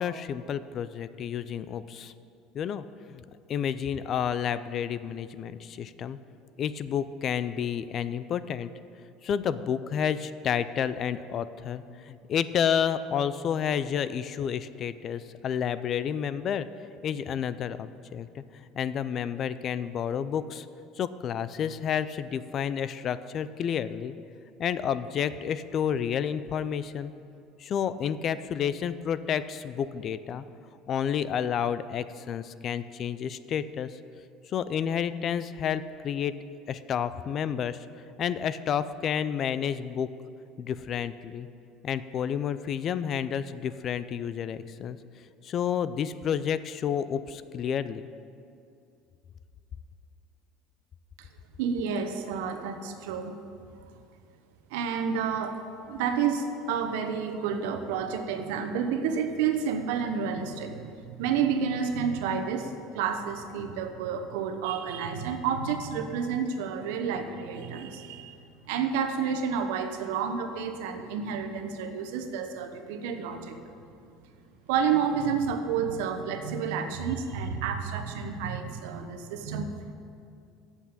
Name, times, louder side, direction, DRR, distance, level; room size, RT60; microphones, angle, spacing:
voice 1, 0.0-2.1 2.5-6.2 6.6-8.7 9.2-16.7 17.0-18.4 18.7-20.7 21.0-24.1 24.6-27.1 27.6-30.4 30.9-34.0 34.5-36.3 36.7-37.8 38.2-40.1 40.6-41.5 41.8-45.0 45.4-48.0, left 8 dB, 40° left, 14 dB, 0.4 m, -30 dB
voice 2, 51.6-53.3 54.7-55.6 55.9-60.8 61.2-73.7 74.7-79.9, right 6 dB, 85° right, 6 dB, 1.0 m, -30 dB
8.0 x 7.1 x 8.6 m, 2.5 s
supercardioid pair, 125°, 0 cm